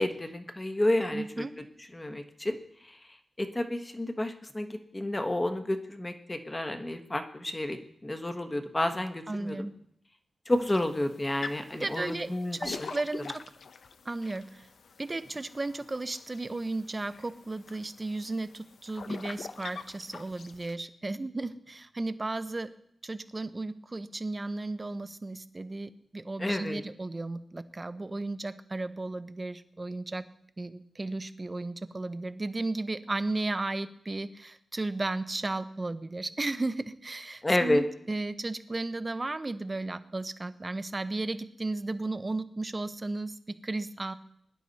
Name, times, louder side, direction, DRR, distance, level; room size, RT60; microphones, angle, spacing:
voice 1, 0.0-1.4 1.9-2.6 2.8-3.0 3.4-9.7 10.5-12.9 26.4-26.8 37.4-37.8, left 1 dB, 15° left, 7 dB, 1.2 m, -30 dB
voice 2, 1.1-1.5 9.3-9.7 11.7-12.3 12.6-13.5 14.0-14.7 15.0-22.7 23.0-30.3 30.6-44.1, right 2 dB, 25° right, 12 dB, 0.7 m, -34 dB
sound 1, 10.5-20.7, left 5 dB, 60° left, 0.7 m, -45 dB
21.0 x 11.0 x 4.1 m, 0.71 s
wide cardioid pair, 145°, 0 cm